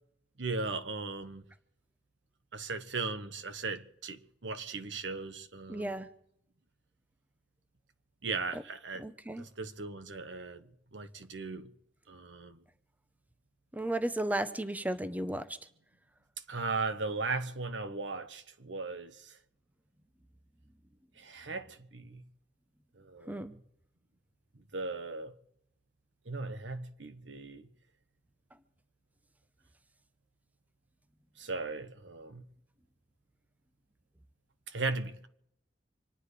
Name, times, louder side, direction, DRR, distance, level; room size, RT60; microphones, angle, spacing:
voice 1, 0.4-1.4 2.5-6.0 8.2-9.0 9.4-11.7 12.1-12.6 16.5-19.4 21.2-22.2 23.0-23.4 24.7-25.3 26.2-27.7 31.4-32.4 34.7-35.3, right 3 dB, 85° right, 1.2 m, -37 dB
voice 2, 5.7-6.1 9.0-9.5 13.7-15.6 23.3-23.5, right 1 dB, 10° right, 0.6 m, -34 dB
25.5 x 9.9 x 5.0 m
head